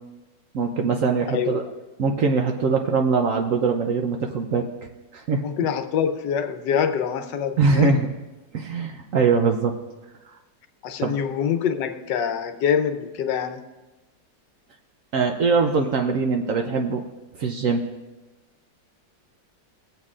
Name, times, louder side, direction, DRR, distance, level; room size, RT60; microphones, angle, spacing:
voice 1, 0.5-1.6 2.0-4.7 5.1-5.4 7.6-8.1 8.5-9.8 11.0-11.2 15.1-17.0 17.4-17.8, right 4 dB, 60° right, 4 dB, 0.9 m, -22 dB
voice 2, 1.3-1.6 5.4-8.0 10.8-13.6, left 8 dB, 80° left, 8 dB, 1.3 m, -25 dB
21.0 x 8.0 x 2.5 m, 1.1 s
omnidirectional pair, 1.9 m